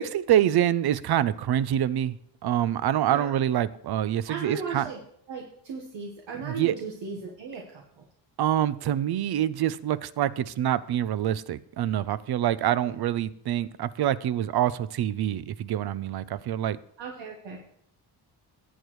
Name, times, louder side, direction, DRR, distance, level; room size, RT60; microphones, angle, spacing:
voice 1, 0.0-2.2 2.4-4.9 6.4-6.7 8.4-16.8, right 11 dB, 60° right, 17 dB, 0.6 m, -26 dB
voice 2, 4.3-5.0 5.3-8.0 12.9-13.0 17.0-17.6, right 4 dB, 75° right, 1 dB, 1.4 m, -37 dB
17.5 x 8.1 x 3.1 m, 0.70 s
cardioid pair, 105°, 44 cm